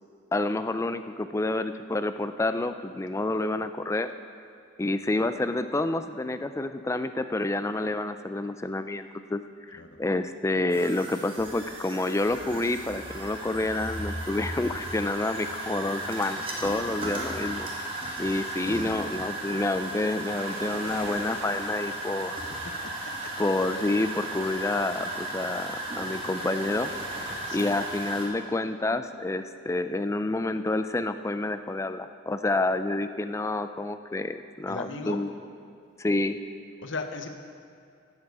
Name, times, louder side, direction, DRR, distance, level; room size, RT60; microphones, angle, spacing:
voice 1, 0.3-4.1 4.8-9.4 9.7-17.7 18.2-22.4 23.4-26.9 27.5-35.3 36.0-36.4, left 2 dB, 15° left, 10 dB, 0.3 m, -28 dB
sound 1, 10.7-28.3, right 1 dB, 25° right, 1.5 m, -35 dB
sound 2, 15.8-27.4, right 1 dB, 75° right, 1.7 m, -47 dB
voice 2, 22.6-23.3 27.5-27.8 34.7-35.2 36.8-37.3, left 3 dB, 65° left, 6 dB, 0.9 m, -37 dB
16.0 x 7.4 x 4.7 m, 2.5 s
head